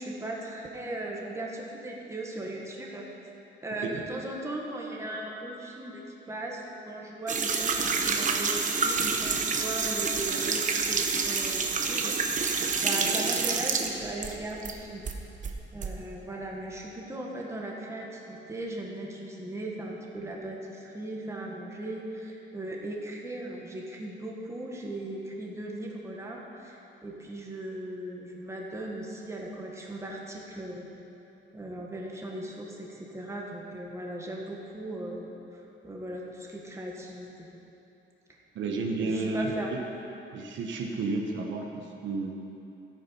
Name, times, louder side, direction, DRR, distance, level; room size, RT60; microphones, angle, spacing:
voice 1, 0.0-3.0 3.6-6.0 6.3-7.7 8.0-10.6 10.9-15.0 15.7-30.9 31.5-37.5 39.0-39.7, right 1 dB, 15° right, -2 dB, 1.6 m, -38 dB
sound 1, 7.3-14.8 15.1-15.9, right 5 dB, 40° right, 1.0 m, -28 dB
voice 2, 38.5-39.8 40.3-42.3, right 3 dB, 75° right, 1 dB, 1.4 m, -31 dB
14.0 x 8.8 x 5.7 m, 2.9 s
cardioid pair, 145°, 20 cm